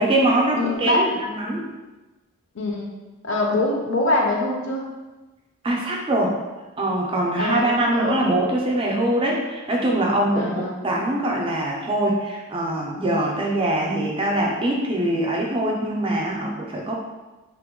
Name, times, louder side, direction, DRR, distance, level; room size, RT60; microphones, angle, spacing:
voice 1, 0.0-1.7 5.6-6.3 6.8-16.9, right 1 dB, 25° right, -2 dB, 0.4 m, -23 dB
voice 2, 0.6-1.1 2.5-2.9 3.2-4.9 7.3-8.4 10.3-10.8, left 2 dB, 55° left, 1 dB, 0.5 m, -24 dB
2.9 x 2.2 x 3.5 m, 1.1 s
head